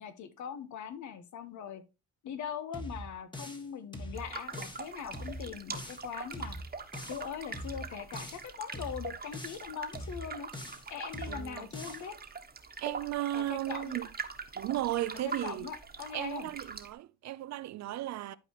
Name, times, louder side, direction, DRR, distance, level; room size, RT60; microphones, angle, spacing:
voice 1, 0.0-1.8 2.2-6.6 7.1-10.5 10.9-12.2 13.3-13.9 15.1-16.5, left 8 dB, 70° left, 1.2 m, -41 dB
sound 1, 2.7-3.7 3.9-4.9 5.1-6.1 6.3-7.3 7.5-8.5 8.7-9.7 9.9-10.9 11.1-12.1, equal, 15° left, 1.5 m, -42 dB
sound 2, 4.1-16.9, right 5 dB, 30° right, 1.3 m, -43 dB
voice 2, 11.3-11.7 12.8-14.1 14.6-15.7 16.1-18.3, right 14 dB, 65° right, 0.5 m, -35 dB
12.0 x 4.7 x 3.0 m
cardioid pair, 90°, 30 cm